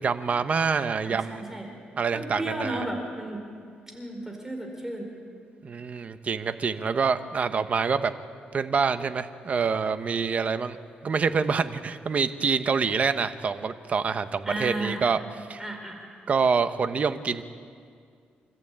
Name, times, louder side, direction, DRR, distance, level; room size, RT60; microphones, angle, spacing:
voice 1, 0.0-1.5 2.0-2.8 5.6-8.1 8.5-10.8 11.0-15.2 15.5-15.6 16.3-17.4, right 5 dB, 40° right, 10 dB, 1.0 m, -26 dB
voice 2, 1.0-1.7 2.1-3.4 3.9-5.1 14.4-15.1 15.6-16.0, right 1 dB, 10° right, 2 dB, 4.2 m, -34 dB
26.5 x 14.0 x 8.9 m, 2.2 s
cardioid pair, 115°, 3 cm